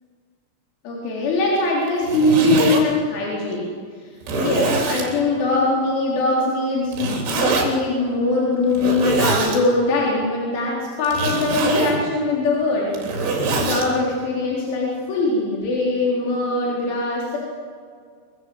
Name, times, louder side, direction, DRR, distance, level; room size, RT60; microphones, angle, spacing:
voice 1, 0.8-3.8 4.4-12.9 13.3-17.4, left 2 dB, 85° left, -4 dB, 6.4 m, -22 dB
Zipper (clothing), 1.9-2.8 3.5-3.6 4.2-5.1 6.9-7.7 8.7-9.6 11.0-12.0 12.8-13.9, right 3 dB, 80° right, 5.8 m, -23 dB
25.0 x 24.0 x 7.8 m, 2.1 s
omnidirectional pair, 5.4 m